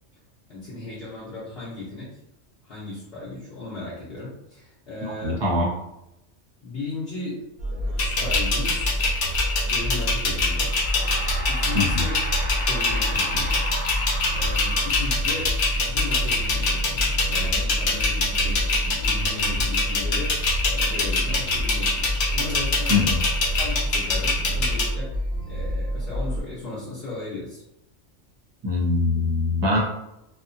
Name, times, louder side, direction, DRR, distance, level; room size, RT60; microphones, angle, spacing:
voice 1, 0.5-2.2 2.6-5.5 6.6-9.0 9.6-10.8 11.5-12.2 12.6-13.6 13.9-14.0 14.3-20.4 20.6-23.0 23.6-25.2 25.5-27.6, left 2 dB, 55° left, -10 dB, 0.9 m, -36 dB
voice 2, 5.0-5.7 11.7-12.0 22.9-23.2 28.6-29.8, left 3 dB, 25° right, -5 dB, 0.7 m, -23 dB
sound 1, 7.6-26.4, equal, 60° right, 0.6 m, -28 dB
sound 2, 8.0-24.8, left 3 dB, 75° left, 1.1 m, -24 dB
sound 3, 10.5-15.5, equal, 10° left, 0.5 m, -35 dB
2.8 x 2.2 x 2.6 m, 0.87 s
omnidirectional pair, 1.2 m